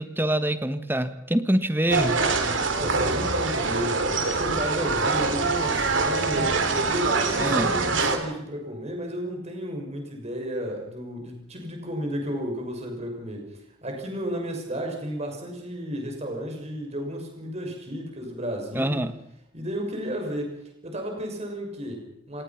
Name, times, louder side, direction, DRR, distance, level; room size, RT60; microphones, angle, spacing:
voice 1, 0.0-2.2 7.4-7.7 18.7-19.1, right 1 dB, 10° right, 11 dB, 1.3 m, -25 dB
sound 1, 1.9-8.2, right 3 dB, 65° right, 3.1 m, -24 dB
voice 2, 2.7-6.5 6.8-13.5 13.8-19.0 19.5-22.4, equal, 35° right, 2 dB, 6.0 m, -33 dB
28.5 x 18.5 x 5.9 m, 0.82 s
head